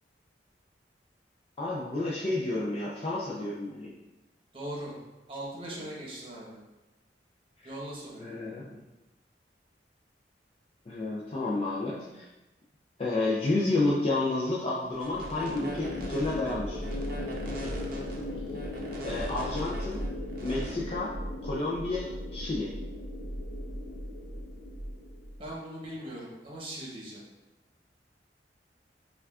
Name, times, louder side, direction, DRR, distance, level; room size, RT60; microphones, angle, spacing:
voice 1, 1.6-3.9 7.6-7.7 8.2-8.8 10.9-12.3 13.0-16.8 19.0-20.0 20.4-21.1 21.4-22.7, left 2 dB, 35° left, -5 dB, 0.4 m, -30 dB
voice 2, 4.5-4.9 5.3-6.6 7.6-8.2 25.4-27.2, right 1 dB, 30° right, -4 dB, 0.9 m, -40 dB
sound 1, 14.9-20.7, equal, 55° right, 0.6 m, -42 dB
sound 2, 15.1-25.5, left 1 dB, 85° left, 0.5 m, -37 dB
5.8 x 2.4 x 2.3 m, 1.0 s
head